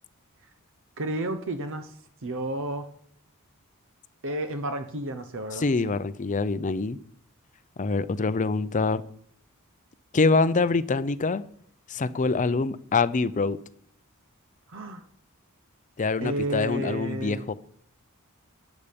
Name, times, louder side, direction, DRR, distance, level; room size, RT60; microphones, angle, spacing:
voice 1, 1.0-1.9 2.2-2.9 4.2-6.0 14.7-15.0 16.2-17.4, right 1 dB, 60° right, 9 dB, 0.9 m, -31 dB
voice 2, 5.6-7.0 7.8-9.0 10.1-11.4 11.9-13.6 16.0-17.5, left 3 dB, 35° left, 14 dB, 0.5 m, -25 dB
12.5 x 8.3 x 5.2 m, 0.64 s
head